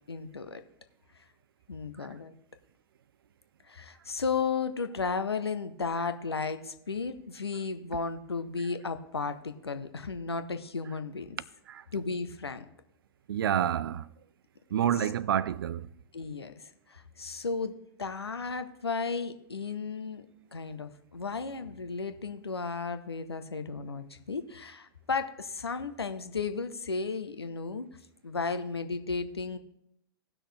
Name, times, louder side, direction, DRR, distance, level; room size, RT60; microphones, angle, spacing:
voice 1, 0.1-0.6 1.7-2.3 3.6-11.4 11.9-12.7 16.1-20.2 20.5-27.9 28.2-29.6, left 4 dB, 80° left, 0.9 m, -34 dB
voice 2, 13.3-14.1 14.7-15.9, right 10 dB, 65° right, 0.4 m, -28 dB
18.0 x 6.1 x 3.4 m
figure-of-eight pair, 95°, 13 cm